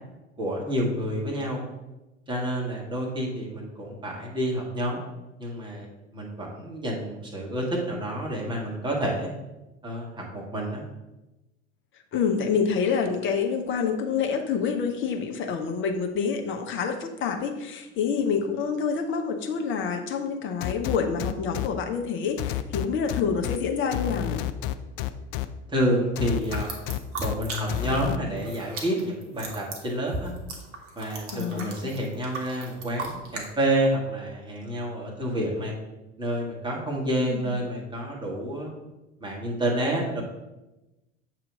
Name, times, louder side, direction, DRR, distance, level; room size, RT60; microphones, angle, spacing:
voice 1, 0.4-1.6 2.3-5.0 5.4-5.9 6.1-9.3 9.8-10.8 25.7-26.7 27.2-30.3 30.9-35.7 36.2-38.7 39.2-40.2, right 1 dB, 15° right, -2 dB, 1.6 m, -29 dB
voice 2, 12.1-24.4 31.3-31.9 37.1-37.6, left 6 dB, 35° left, 4 dB, 0.8 m, -27 dB
sound 1, 20.6-21.7 22.4-23.6 23.9-25.5 26.2-27.3 27.7-28.2, left 13 dB, 50° left, 0.4 m, -29 dB
sound 2, 26.4-28.0 28.3-33.5, right 3 dB, 40° right, 1.2 m, -37 dB
7.3 x 3.0 x 5.0 m, 1.0 s
figure-of-eight pair, 70°, 35 cm